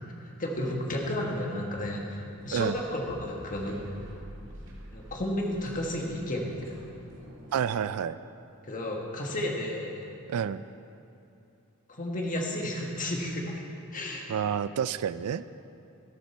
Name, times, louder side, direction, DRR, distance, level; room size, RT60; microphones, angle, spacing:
voice 1, 0.4-3.8 4.9-6.7 8.7-10.0 11.9-13.5 13.9-14.3, left 1 dB, 35° left, 0 dB, 1.7 m, -32 dB
sound 1, 2.4-7.7, right 1 dB, 60° right, 2.1 m, -48 dB
voice 2, 7.5-8.2 10.3-10.6 14.3-15.4, right 8 dB, 80° right, 15 dB, 0.4 m, -29 dB
13.5 x 12.0 x 4.4 m, 2.7 s
head